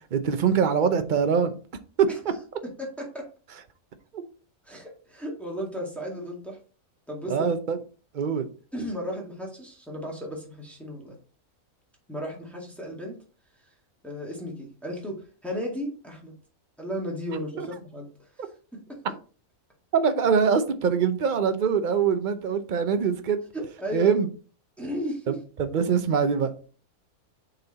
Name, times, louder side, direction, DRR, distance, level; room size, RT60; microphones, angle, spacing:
voice 1, 0.1-1.5 2.0-2.1 4.1-4.2 7.3-7.8 8.1-8.5 17.6-17.7 19.9-23.4 23.9-24.3 25.3-26.5, right 6 dB, 45° right, 0.7 m, -23 dB
voice 2, 2.6-3.3 4.6-6.6 7.1-7.5 8.7-11.2 12.1-13.2 14.0-16.3 16.8-18.1 18.4-19.0 23.5-24.2 24.8-25.4, equal, ahead, 1.9 m, -35 dB
6.8 x 4.3 x 4.0 m
omnidirectional pair, 1.5 m